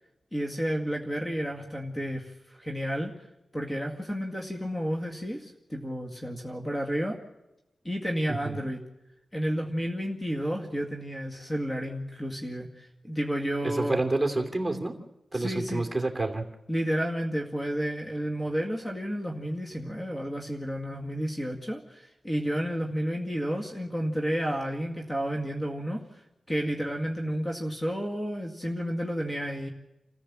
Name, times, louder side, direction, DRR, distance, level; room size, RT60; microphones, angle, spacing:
voice 1, 0.3-3.1 3.5-7.2 7.8-8.8 9.3-14.0 15.3-15.9 16.7-26.2 26.5-29.7, equal, 20° left, 1 dB, 2.0 m, -31 dB
voice 2, 13.6-14.9 15.3-16.4, right 2 dB, 15° right, 3 dB, 2.9 m, -28 dB
28.0 x 14.5 x 7.4 m, 0.93 s
wide cardioid pair, 85°, 0 cm